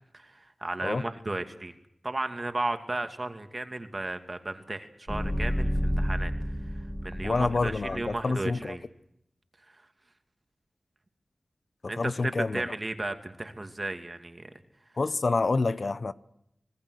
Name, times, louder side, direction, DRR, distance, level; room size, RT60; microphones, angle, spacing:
voice 1, 0.1-1.7 2.0-6.3 7.0-8.8 11.9-14.5, right 2 dB, 35° right, 2.6 m, -34 dB
sound 1, 5.1-8.2, equal, 5° left, 2.3 m, -30 dB
voice 2, 7.2-8.8 11.8-12.7 15.0-16.1, left 3 dB, 60° left, 0.8 m, -28 dB
26.0 x 19.0 x 6.5 m
wide cardioid pair, 55°, 0 cm